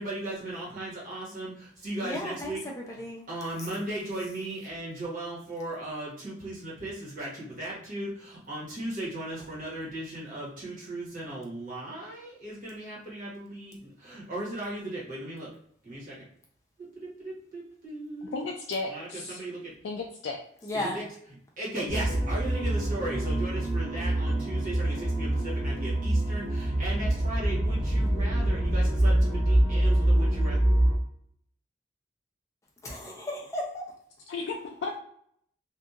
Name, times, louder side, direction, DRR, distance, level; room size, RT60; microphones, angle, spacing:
voice 1, 0.0-2.6 2.9-3.0 3.3-15.5 15.8-16.2 16.9-18.4 18.9-19.7 20.7-21.0 21.6-30.6, right 1 dB, 50° right, -6 dB, 1.3 m, -37 dB
voice 2, 2.0-3.3 20.6-21.0 32.8-33.9, left 1 dB, 15° left, -2 dB, 0.6 m, -35 dB
voice 3, 18.2-19.4 19.8-20.4 34.3-35.0, left 3 dB, 90° left, 1 dB, 0.3 m, -34 dB
sound 1, 21.9-30.9, right 1 dB, 30° right, 1.1 m, -25 dB
2.7 x 2.5 x 2.4 m, 0.67 s
head